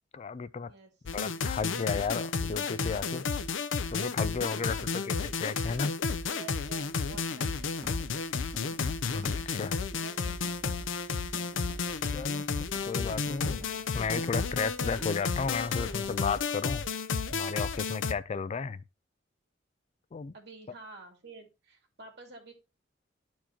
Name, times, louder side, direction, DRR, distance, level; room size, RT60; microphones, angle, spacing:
voice 1, 0.1-0.7 1.1-3.2 3.9-5.9 9.1-9.8 12.1-12.4 12.9-13.6 13.9-16.9 17.3-18.8 20.1-20.3, left 5 dB, 35° left, 0.3 m, -33 dB
sound 1, 1.1-18.1, left 5 dB, 85° left, 0.6 m, -32 dB
voice 2, 4.5-5.1 6.3-8.3 9.9-10.6 18.5-18.6 20.3-22.5, right 3 dB, 65° right, 2.3 m, -50 dB
sound 2, 7.1-16.3, equal, 20° right, 2.2 m, -49 dB
12.0 x 4.5 x 2.9 m
head